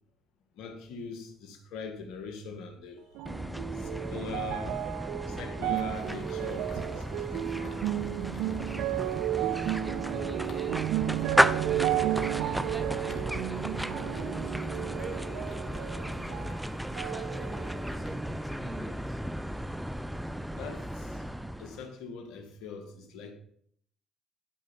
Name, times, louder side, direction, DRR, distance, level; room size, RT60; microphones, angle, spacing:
voice 1, 0.5-3.2 3.7-5.0 5.3-7.9 20.5-21.2 21.6-23.3, left 5 dB, 80° left, 1.6 m, -42 dB
sound 1, 3.2-16.6 17.0-17.9 18.6-18.7, right 14 dB, 80° right, 0.3 m, -33 dB
sound 2, 3.3-21.9, equal, 5° right, 0.6 m, -34 dB
sound 3, 5.9-18.1, left 4 dB, 50° left, 2.5 m, -54 dB
voice 2, 9.2-19.2, right 1 dB, 20° right, 1.7 m, -46 dB
12.0 x 5.3 x 5.2 m
supercardioid pair, 65°, 0 cm